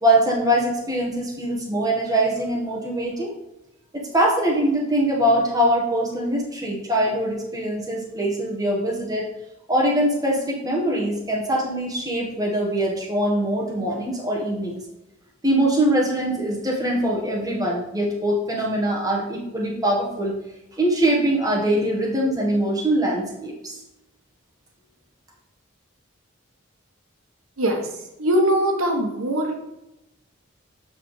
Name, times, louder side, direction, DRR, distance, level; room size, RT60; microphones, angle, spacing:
voice 1, 0.0-3.3 3.9-9.3 9.7-14.8 15.4-20.4 20.8-23.8, right 1 dB, 15° right, -3 dB, 1.3 m, -22 dB
voice 2, 27.6-27.9 28.2-29.6, right 1 dB, 80° right, 2 dB, 1.0 m, -21 dB
7.5 x 5.8 x 3.2 m, 0.92 s
head